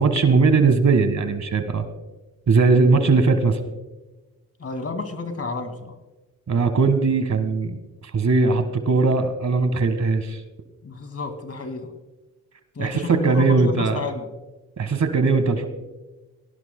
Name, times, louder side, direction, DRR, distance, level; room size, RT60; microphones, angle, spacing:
voice 1, 0.0-1.8 2.5-3.6 6.5-7.8 8.1-10.4 12.8-14.0 14.8-15.7, right 4 dB, 45° right, 9 dB, 1.6 m, -19 dB
voice 2, 4.6-5.9 10.8-11.9 12.7-14.3, left 3 dB, 40° left, 8 dB, 2.1 m, -31 dB
21.5 x 17.0 x 2.2 m, 1.1 s
supercardioid pair, 55°, 38 cm